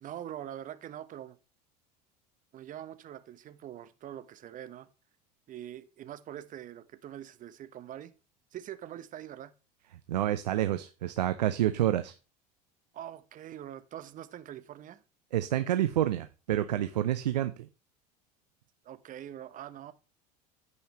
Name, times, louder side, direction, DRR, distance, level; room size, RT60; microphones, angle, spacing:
voice 1, 0.0-1.4 2.5-4.9 5.5-8.1 8.5-9.5 12.9-15.0 18.8-19.9, right 11 dB, 40° right, 1.1 m, -44 dB
voice 2, 10.1-12.1 15.3-17.7, right 12 dB, 80° right, 0.7 m, -28 dB
15.0 x 5.6 x 3.1 m
hypercardioid pair, 75°, 21 cm